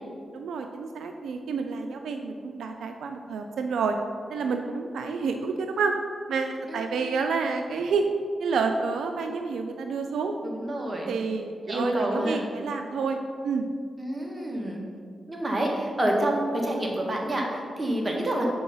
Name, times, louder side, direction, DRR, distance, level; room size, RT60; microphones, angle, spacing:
voice 1, 0.3-4.0 4.3-5.9 6.3-8.0 8.4-10.3 11.1-13.2 13.4-13.7, right 5 dB, 90° right, 5 dB, 0.3 m, -29 dB
voice 2, 10.4-11.1 11.6-12.5 14.0-14.8 15.3-18.5, right 1 dB, 30° right, 0 dB, 1.5 m, -28 dB
6.1 x 4.5 x 5.5 m, 2.2 s
cardioid pair, 65°, 0 cm